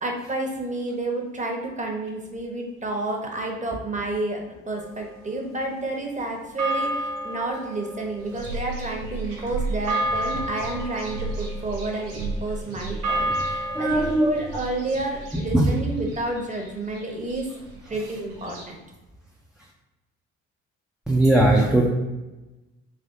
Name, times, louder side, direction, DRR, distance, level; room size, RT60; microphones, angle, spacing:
voice 1, 0.0-17.5 17.9-18.6, right 2 dB, 20° right, 1 dB, 0.8 m, -30 dB
sound 1, 4.8-6.1 6.6-15.2, right 1 dB, 45° right, 1.0 m, -32 dB
sound 2, 8.2-18.6, right 3 dB, 75° right, 0.9 m, -35 dB
voice 2, 13.7-14.3 15.5-15.7 21.1-21.9, right 1 dB, ahead, -3 dB, 0.4 m, -18 dB
3.5 x 3.0 x 2.6 m, 1.1 s
hypercardioid pair, 45°, 38 cm